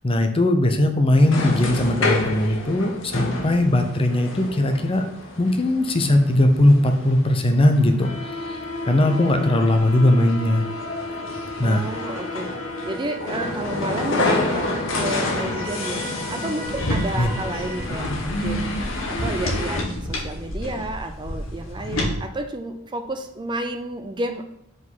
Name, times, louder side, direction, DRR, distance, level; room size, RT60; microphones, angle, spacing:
voice 1, 0.0-5.1 5.4-8.6 8.9-10.7 11.6-11.8 17.2-17.3, left 1 dB, 30° left, 5 dB, 0.7 m, -19 dB
sound 1, 1.2-19.8, left 2 dB, 70° left, 1.3 m, -29 dB
voice 2, 11.6-12.5 12.8-18.7 19.1-24.4, right 1 dB, 25° right, 6 dB, 0.5 m, -31 dB
sound 2, 11.9-17.8, right 1 dB, 5° left, 1.0 m, -38 dB
sound 3, 16.6-22.1, left 1 dB, 90° left, 1.6 m, -29 dB
5.2 x 4.1 x 5.5 m, 0.77 s
head